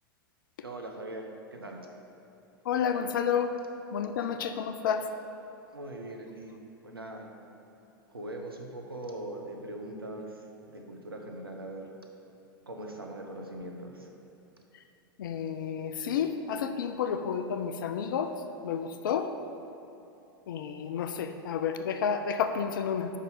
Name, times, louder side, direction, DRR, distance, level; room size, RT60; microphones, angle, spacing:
voice 1, 0.6-1.9 5.7-6.6 6.8-7.3 8.1-11.9 12.7-14.1, right 1 dB, 90° right, 1 dB, 0.7 m, -41 dB
voice 2, 2.7-3.6 3.9-5.1 15.2-18.3 18.6-19.3 20.5-23.1, left 7 dB, 60° left, 8 dB, 0.4 m, -30 dB
5.4 x 5.0 x 5.5 m, 2.8 s
figure-of-eight pair, 95°, 12 cm